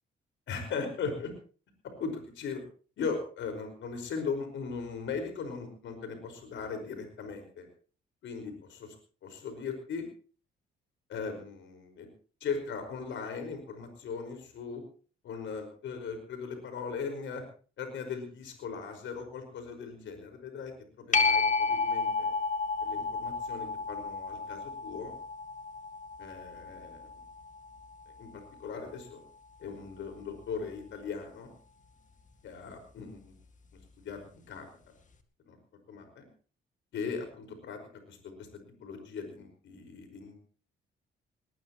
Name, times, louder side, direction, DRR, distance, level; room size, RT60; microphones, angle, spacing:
voice 1, 0.5-1.3 2.0-2.6 3.0-7.7 8.2-8.9 9.2-10.0 11.1-12.1 12.4-14.8 15.2-17.4 17.8-20.7 21.0-22.3 22.8-25.1 26.2-27.1 28.2-29.2 29.6-31.5 32.4-33.3 34.0-34.7 35.5-35.6 35.9-36.3 36.9-37.8 38.1-38.5 38.8-40.4, left 5 dB, 75° left, 6 dB, 5.2 m, -38 dB
sound 1, 21.1-28.3 33.8-33.9, left 4 dB, 40° left, 2.0 m, -32 dB
20.0 x 19.5 x 3.1 m, 0.40 s
cardioid pair, 90°, 20 cm